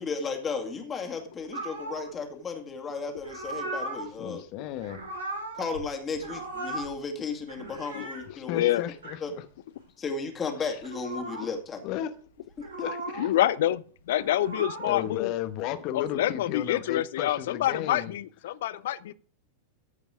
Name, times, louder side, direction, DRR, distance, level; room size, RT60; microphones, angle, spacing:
voice 1, 0.0-4.4 5.5-8.6 9.2-9.3 10.0-11.8, left 5 dB, 20° left, 2.2 m, -34 dB
sound 1, 1.5-2.1 3.2-4.1 4.7-5.9 6.1-6.9 7.4-8.3 8.9-9.2 10.7-11.5 12.5-13.3 14.0-15.1 16.0-16.3, right 2 dB, 75° right, 2.5 m, -37 dB
voice 2, 4.2-5.0 8.3-9.4 11.8-12.1 12.8-13.3 14.8-18.1, left 12 dB, 45° left, 1.1 m, -34 dB
voice 3, 8.4-8.8 13.2-15.3 15.9-19.1, left 13 dB, 60° left, 0.6 m, -27 dB
14.5 x 5.3 x 4.9 m
figure-of-eight pair, 90°, 0 cm